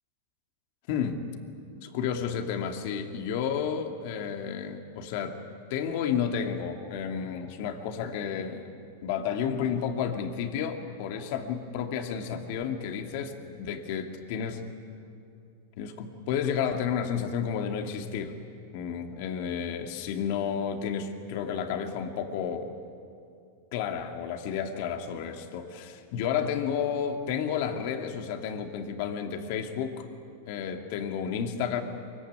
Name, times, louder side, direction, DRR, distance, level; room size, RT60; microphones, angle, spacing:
voice 1, 1.8-5.4 5.7-8.7 9.0-14.6 15.8-18.3 18.7-22.7 23.7-30.1 30.5-31.8, left 7 dB, 60° left, 5 dB, 2.6 m, -31 dB
24.0 x 22.5 x 9.6 m, 2.5 s
supercardioid pair, 130°, 0 cm